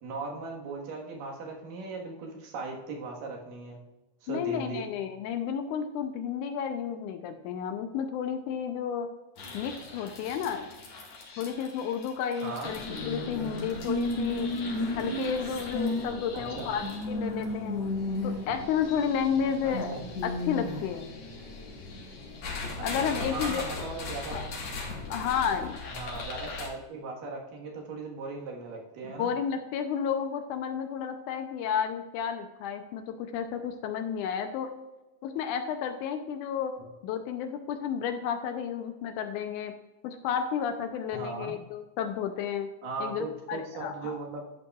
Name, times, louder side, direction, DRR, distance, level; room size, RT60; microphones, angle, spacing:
voice 1, 0.0-3.8 4.2-4.9 12.4-12.8 16.3-16.7 19.6-20.0 22.8-24.5 25.9-29.3 41.1-41.6 42.8-44.4, right 3 dB, 80° right, 0 dB, 3.1 m, -38 dB
voice 2, 4.3-9.1 9.5-10.7 11.4-14.5 15.0-17.8 18.2-21.1 22.8-23.7 24.3-24.5 25.1-25.8 29.0-34.7 35.2-36.7 37.0-39.7 40.0-42.7 43.0-44.2, left 7 dB, 80° left, 7 dB, 1.9 m, -32 dB
sound 1, 9.4-26.7, left 2 dB, 55° left, 2.6 m, -35 dB
11.0 x 8.2 x 2.3 m, 1.1 s
omnidirectional pair, 3.8 m